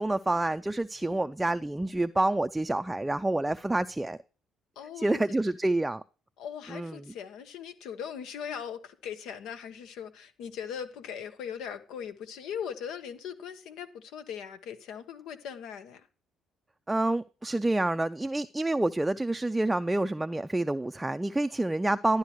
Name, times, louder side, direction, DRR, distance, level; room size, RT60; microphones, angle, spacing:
voice 1, 0.0-4.2 5.0-6.0 6.7-6.9 16.9-22.2, right 2 dB, 15° right, 0.4 m, -28 dB
voice 2, 4.7-5.2 6.4-16.1, left 8 dB, 75° left, 1.2 m, -40 dB
12.0 x 10.5 x 3.1 m
supercardioid pair, 65°, 0 cm